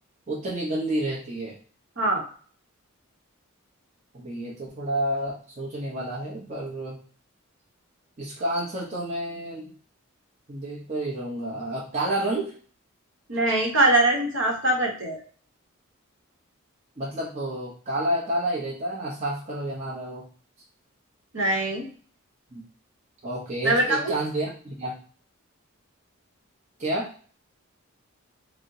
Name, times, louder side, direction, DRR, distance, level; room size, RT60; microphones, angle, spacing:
voice 1, 0.3-1.6 4.1-7.0 8.2-9.7 10.5-12.5 17.0-20.3 22.5-22.6 23.2-25.0 26.8-27.1, right 1 dB, 35° right, -5 dB, 0.7 m, -30 dB
voice 2, 13.3-15.2 21.3-21.8 23.6-24.1, right 2 dB, 60° right, 0 dB, 0.9 m, -22 dB
4.2 x 2.0 x 2.6 m, 0.43 s
head